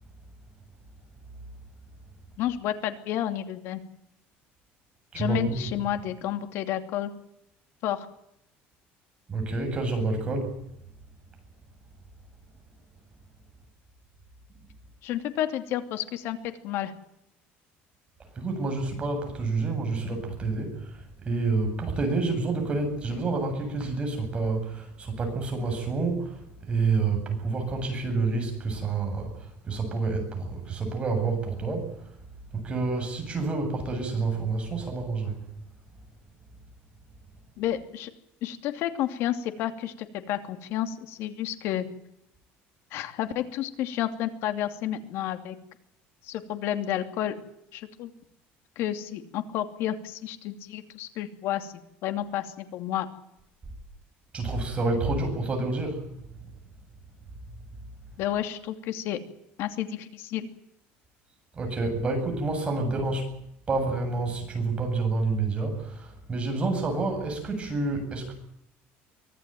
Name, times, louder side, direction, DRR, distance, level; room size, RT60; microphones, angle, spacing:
voice 1, 2.4-3.8 5.1-7.1 7.8-8.1 15.0-16.9 37.6-38.1 38.4-41.9 42.9-45.6 46.3-47.4 47.7-48.1 48.8-51.7 52.0-53.1 58.2-59.2 59.6-60.5, left 11 dB, 65° left, 8 dB, 2.7 m, -31 dB
voice 2, 5.1-5.7 9.3-10.6 18.3-32.0 32.5-35.4 54.3-56.0 61.5-63.3 63.7-68.3, right 3 dB, 25° right, 4 dB, 8.0 m, -28 dB
24.0 x 16.5 x 9.2 m, 0.77 s
cardioid pair, 145°, 5 cm